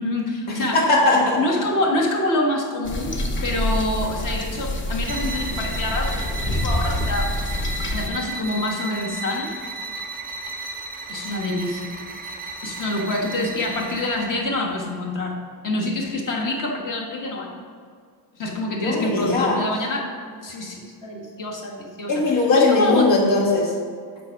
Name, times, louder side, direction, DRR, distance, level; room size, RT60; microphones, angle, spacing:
voice 1, 0.0-0.9 1.4-3.1 3.4-7.3 7.9-9.5 11.1-12.0 12.6-15.4 15.6-17.5 18.3-20.1 20.4-23.2, left 1 dB, 45° left, -1 dB, 1.5 m, -26 dB
voice 2, 0.7-1.4 18.8-19.6 22.1-23.7, left 3 dB, 75° left, -2 dB, 1.9 m, -19 dB
sound 1, 2.8-8.1, left 1 dB, 25° left, 0.7 m, -26 dB
sound 2, 5.0-14.4, right 3 dB, 20° right, 0.7 m, -34 dB
7.7 x 5.0 x 4.7 m, 2.1 s
cardioid pair, 130°, 45 cm